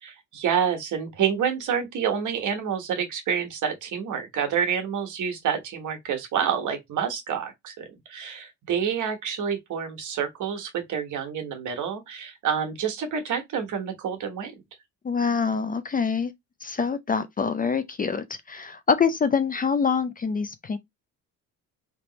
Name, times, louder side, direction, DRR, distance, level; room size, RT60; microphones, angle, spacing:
voice 1, 0.0-14.5, right 7 dB, 60° right, 1.3 m, -28 dB
voice 2, 15.0-16.3 16.6-20.8, left 5 dB, 25° left, 0.5 m, -25 dB
3.4 x 2.8 x 4.0 m
cardioid pair, 95°, 35 cm